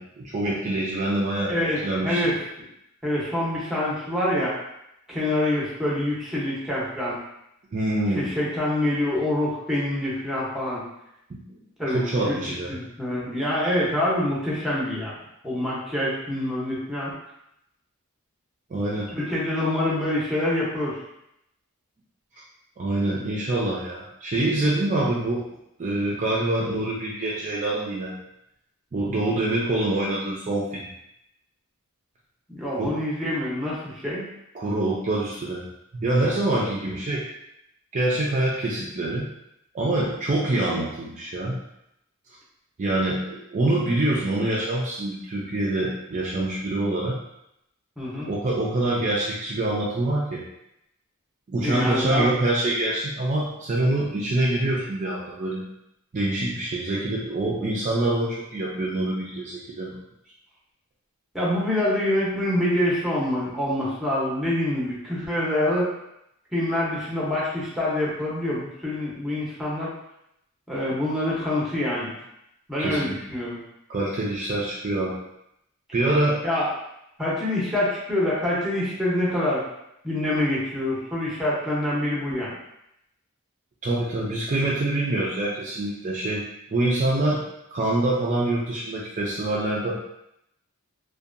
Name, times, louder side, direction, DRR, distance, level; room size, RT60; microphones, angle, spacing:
voice 1, 0.0-1.5 1.8-2.2 7.7-8.3 11.3-11.4 11.9-12.8 18.7-19.1 22.8-25.4 25.8-28.1 28.9-30.9 32.8-33.0 34.5-35.6 35.9-37.3 37.9-39.3 39.7-41.6 42.8-47.2 48.3-50.4 51.5-55.6 56.1-60.0 72.8-73.2 73.9-75.2 75.9-76.5 83.8-86.5 86.7-87.4 87.7-89.9, right 2 dB, 35° right, -5 dB, 0.4 m, -25 dB
voice 2, 1.5-2.3 3.0-4.5 5.1-7.2 8.1-10.8 11.8-12.4 12.7-15.1 15.4-17.1 19.1-21.0 32.5-34.3 48.0-48.3 51.6-52.3 61.3-65.9 66.5-69.9 70.7-72.1 72.7-73.6 76.4-76.7 77.2-79.6 80.0-82.5, left 1 dB, ahead, -7 dB, 0.7 m, -26 dB
2.7 x 2.2 x 2.4 m, 0.81 s
head